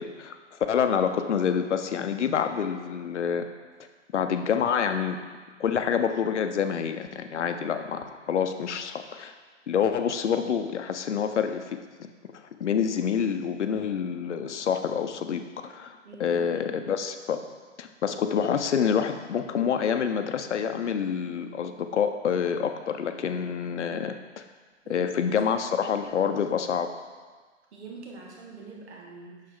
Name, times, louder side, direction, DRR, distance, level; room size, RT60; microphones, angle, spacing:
voice 1, 0.0-3.5 4.1-5.2 5.6-9.3 9.7-17.4 17.8-24.4 24.9-26.9, left 7 dB, 65° left, 8 dB, 0.8 m, -27 dB
voice 2, 16.0-16.9 24.8-25.8 27.7-29.6, right 3 dB, 60° right, -1 dB, 1.8 m, -45 dB
8.9 x 6.7 x 3.8 m, 1.4 s
hypercardioid pair, 145°, 38 cm